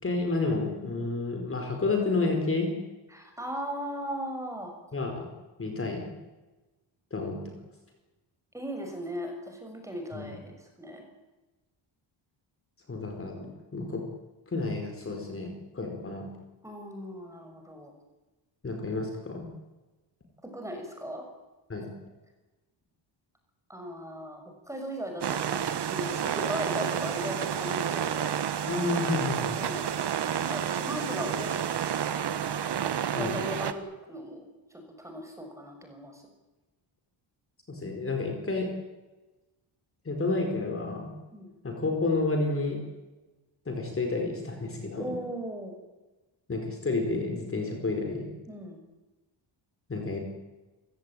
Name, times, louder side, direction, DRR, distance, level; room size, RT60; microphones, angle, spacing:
voice 1, 0.0-2.7 4.9-5.3 5.6-6.1 7.1-7.5 10.1-10.4 12.9-14.0 14.5-16.3 18.6-19.5 21.7-21.9 28.7-29.6 33.1-33.4 37.7-38.7 40.0-41.1 41.6-42.8 43.7-45.1 46.5-48.3 49.9-50.2, left 3 dB, 25° left, 3 dB, 4.6 m, -30 dB
voice 2, 3.1-4.7 8.5-11.1 16.6-17.9 20.4-21.2 23.7-28.4 29.5-29.9 30.3-31.5 33.2-34.4 34.7-36.2 41.3-41.5 44.9-45.7 48.5-48.8, equal, 5° right, 3 dB, 6.2 m, -37 dB
sound 1, 25.2-33.7, right 9 dB, 55° right, 1.7 m, -30 dB
30.0 x 17.0 x 9.2 m, 1.1 s
wide cardioid pair, 150°, 47 cm